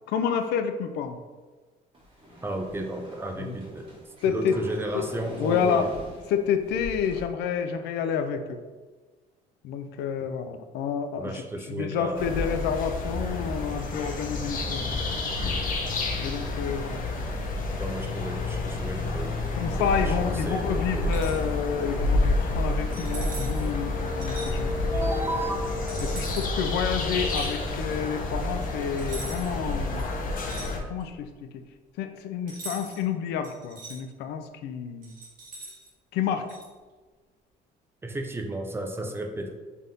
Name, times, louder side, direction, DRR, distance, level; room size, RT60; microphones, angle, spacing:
voice 1, 0.1-1.2 3.4-3.6 4.2-4.6 4.9-5.1 5.4-5.9 6.3-8.6 9.6-15.2 16.2-17.1 19.6-24.7 26.0-30.1 30.9-31.6 32.0-35.1 36.1-36.5, left 7 dB, 80° left, 8 dB, 0.4 m, -29 dB
sound 1, 1.9-7.2, equal, 30° right, 1.4 m, -45 dB
voice 2, 2.4-4.0 4.3-5.9 11.2-12.5 17.8-21.1 24.9-25.6 38.0-39.6, right 1 dB, 15° right, 4 dB, 0.4 m, -33 dB
sound 2, 12.2-30.8, left 2 dB, 55° left, 0.7 m, -29 dB
sound 3, 21.0-21.4 22.9-23.7 24.2-24.5 25.9-26.5 27.2-27.5 29.0-29.6 29.9-31.1 32.5-33.0 33.4-34.0 35.0-35.9 36.5-36.7, right 3 dB, 55° right, 1.3 m, -41 dB
3.4 x 2.7 x 3.7 m, 1.3 s
cardioid pair, 110°, 17 cm